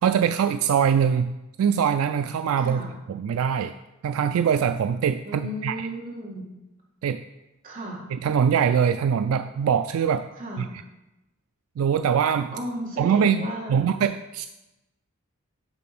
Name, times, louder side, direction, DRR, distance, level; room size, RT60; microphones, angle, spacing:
voice 1, 0.0-2.8 3.1-3.7 4.0-5.9 7.0-7.2 8.1-10.3 10.6-10.7 11.8-12.5 13.0-14.5, right 7 dB, 75° right, 10 dB, 0.3 m, -23 dB
voice 2, 2.6-2.9 5.2-6.5 7.6-8.0 10.4-10.7 12.5-13.9, equal, 40° right, -4 dB, 2.2 m, -34 dB
9.7 x 3.8 x 5.9 m, 0.97 s
head